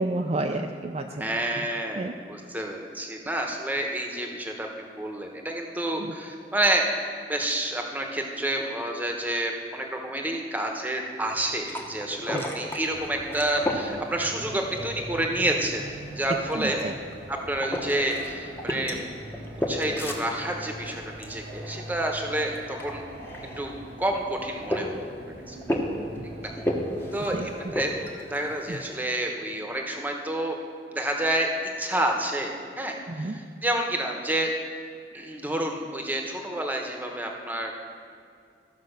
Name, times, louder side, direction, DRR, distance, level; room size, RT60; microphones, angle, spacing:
voice 1, 0.0-1.3 1.6-1.7 2.0-2.1 6.0-6.1 12.3-12.4 16.5-16.9 26.2-26.3 27.3-27.5 28.7-28.8 33.1-33.4, right 2 dB, 35° right, 3 dB, 0.4 m, -30 dB
voice 2, 1.2-4.7 5.0-6.9 7.3-15.8 16.2-16.8 17.3-19.0 19.7-23.0 23.6-23.7 24.0-24.9 25.5-25.6 26.4-26.5 27.1-27.9 28.3-30.6 30.9-31.5 31.8-34.5 35.1-37.7, right 1 dB, 10° right, 2 dB, 1.0 m, -29 dB
sound 1, 11.2-29.0, equal, 15° left, 1.0 m, -35 dB
sound 2, 12.9-27.9, right 1 dB, 85° right, 1.3 m, -42 dB
13.5 x 5.2 x 6.6 m, 2.3 s
head